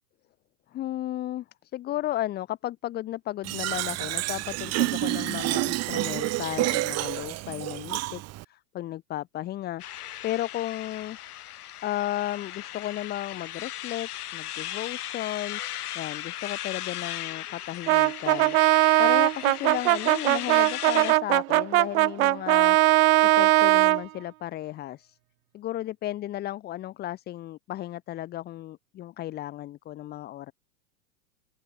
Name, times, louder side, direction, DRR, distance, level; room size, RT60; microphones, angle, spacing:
voice 1, 0.7-8.2 8.5-9.8 10.2-11.2 11.8-15.6 15.9-18.6 19.0-22.8 23.2-25.2 25.5-30.5, left 14 dB, 20° left, 0.6 m, -34 dB
Fill (with liquid), 3.4-8.4, right 18 dB, 35° right, 1.2 m, -29 dB
sound 1, 9.8-21.1, left 13 dB, 70° left, 2.7 m, -37 dB
Brass instrument, 17.9-24.0, right 18 dB, 65° right, 0.8 m, -20 dB
open air
hypercardioid pair, 105°, 47 cm